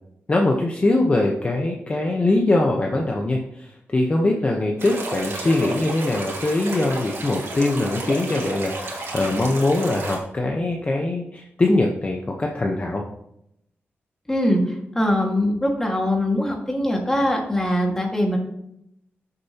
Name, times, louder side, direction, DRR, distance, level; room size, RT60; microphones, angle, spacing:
voice 1, 0.3-13.0, left 2 dB, 30° left, 0 dB, 1.0 m, -22 dB
sound 1, 4.8-10.2, right 2 dB, 75° right, 2.4 m, -32 dB
voice 2, 14.3-14.6 15.0-18.4, left 1 dB, 10° left, 0 dB, 1.9 m, -22 dB
13.0 x 6.8 x 3.0 m, 0.77 s
wide cardioid pair, 120°, 4 cm